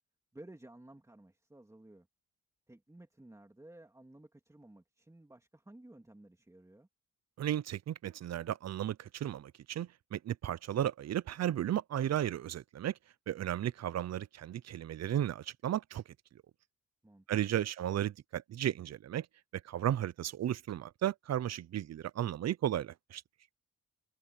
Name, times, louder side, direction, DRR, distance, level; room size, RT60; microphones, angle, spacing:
voice 1, 0.3-2.1 2.7-6.9 17.0-17.6, right 1 dB, 10° right, 3.2 m, -55 dB
voice 2, 7.4-12.9 13.3-16.0 17.3-19.3 19.6-23.2, right 11 dB, 55° right, 0.5 m, -34 dB
wide cardioid pair, 135°, 31 cm